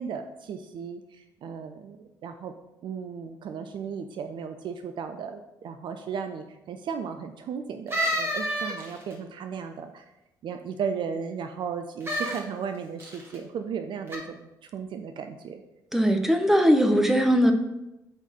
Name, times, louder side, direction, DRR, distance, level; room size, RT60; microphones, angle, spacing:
voice 1, 0.0-2.0 2.2-2.5 2.8-10.1 10.4-15.6, right 6 dB, 50° right, 7 dB, 0.5 m, -35 dB
sound 1, 7.9-9.1 12.0-12.4 13.0-13.4 14.1-14.2, equal, 25° right, 1.9 m, -29 dB
voice 2, 15.9-17.5, equal, 5° right, 5 dB, 0.9 m, -20 dB
7.9 x 4.0 x 4.2 m, 0.93 s
figure-of-eight pair, 45°, 10 cm